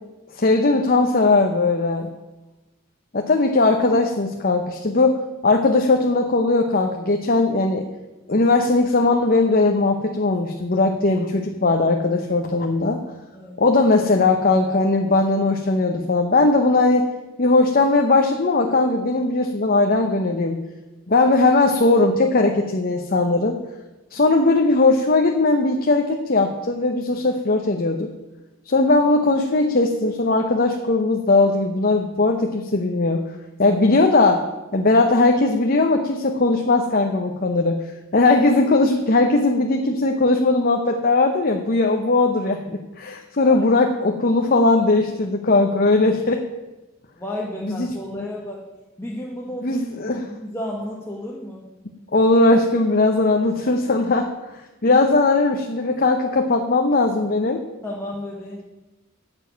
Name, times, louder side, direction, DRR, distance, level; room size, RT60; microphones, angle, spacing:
voice 1, 0.3-2.1 3.1-7.8 8.3-13.0 13.6-17.1 17.4-20.6 21.1-23.6 24.1-28.1 28.7-33.3 33.6-34.4 34.7-37.8 38.1-46.4 47.8-47.9 49.6-50.2 52.1-54.3 54.8-57.6, left 2 dB, 45° left, 3 dB, 0.8 m, -19 dB
voice 2, 47.2-48.6 49.0-51.7 54.8-55.0 57.8-58.6, left 1 dB, 10° left, -3 dB, 1.4 m, -33 dB
9.7 x 7.1 x 9.2 m, 1.1 s
head